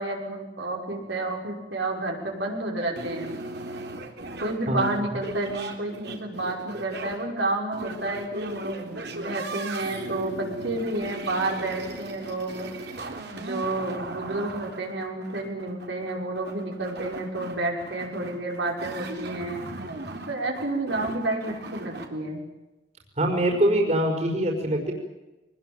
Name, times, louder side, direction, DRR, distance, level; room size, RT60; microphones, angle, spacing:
voice 1, 0.0-3.4 4.4-12.7 13.3-19.6 20.3-22.4, right 2 dB, 80° right, 0 dB, 5.9 m, -30 dB
sound 1, 3.0-22.1, right 2 dB, 65° right, 3.5 m, -38 dB
voice 2, 4.7-5.1 23.2-24.9, right 1 dB, 40° right, 2 dB, 4.8 m, -24 dB
23.5 x 20.0 x 9.1 m, 1.0 s
head